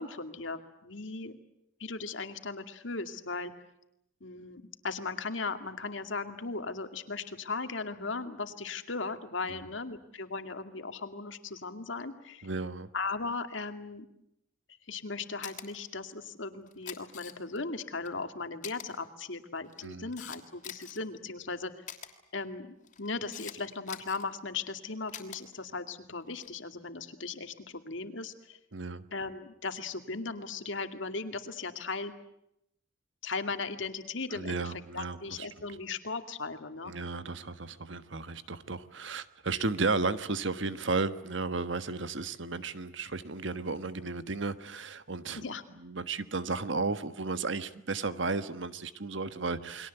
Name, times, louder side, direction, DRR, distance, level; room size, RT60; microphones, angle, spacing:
voice 1, 0.0-1.4 1.8-3.5 4.2-12.5 12.9-14.1 14.9-21.7 22.3-28.6 29.1-32.1 33.2-36.9 45.4-45.6, left 3 dB, 70° left, 8 dB, 2.3 m, -37 dB
voice 2, 12.4-12.9 19.8-20.1 28.7-29.0 34.3-35.5 36.8-49.9, right 3 dB, 65° right, 12 dB, 1.4 m, -34 dB
Camera, 15.4-15.7 16.7-17.6 18.0-18.1 18.6-18.9 19.6-21.0 21.9-22.1 22.8-23.6 23.9-24.3 25.1-25.4 26.3-26.6, left 9 dB, 40° left, 3.0 m, -44 dB
29.5 x 22.0 x 8.1 m, 0.80 s
head